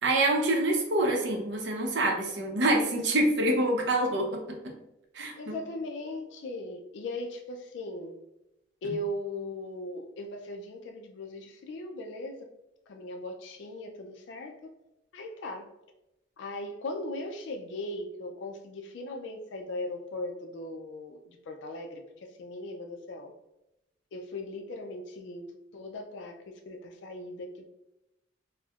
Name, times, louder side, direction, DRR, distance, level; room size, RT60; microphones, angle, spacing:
voice 1, 0.0-4.6 5.1-5.5, right 1 dB, 65° right, 1 dB, 0.6 m, -26 dB
voice 2, 5.4-8.2 8.8-12.5 12.9-14.7 15.1-15.7 16.4-23.3 24.1-26.4 26.7-27.6, left 1 dB, 65° left, 3 dB, 0.4 m, -38 dB
4.2 x 2.0 x 2.3 m, 0.90 s
head